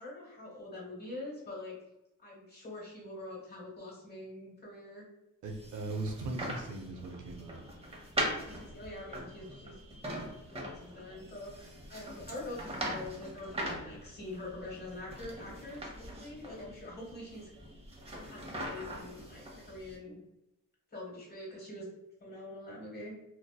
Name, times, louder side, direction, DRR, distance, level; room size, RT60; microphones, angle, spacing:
voice 1, 0.0-1.7 2.2-5.1 8.4-9.7 10.1-17.5 18.2-20.2 20.9-21.9 22.2-23.1, left 2 dB, 30° left, -4 dB, 1.3 m, -45 dB
voice 2, 5.4-7.6, right 2 dB, 75° right, 2 dB, 0.5 m, -39 dB
sound 1, 5.5-20.0, right 1 dB, 20° right, 0.7 m, -41 dB
2.6 x 2.1 x 2.2 m, 0.90 s
cardioid pair, 85°, 31 cm